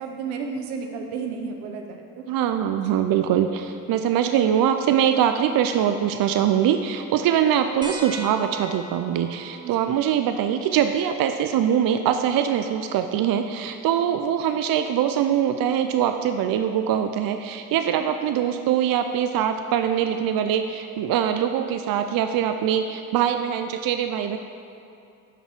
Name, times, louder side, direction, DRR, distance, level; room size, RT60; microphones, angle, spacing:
voice 1, 0.0-2.2 2.8-3.0 9.6-9.8, right 5 dB, 80° right, 4 dB, 0.9 m, -32 dB
voice 2, 2.3-24.4, right 9 dB, 55° right, 8 dB, 0.5 m, -23 dB
sound 1, 7.8-12.9 14.4-14.5 16.2-16.3, right 2 dB, 10° right, 1.2 m, -42 dB
11.0 x 5.4 x 4.5 m, 2.7 s
hypercardioid pair, 45°, 41 cm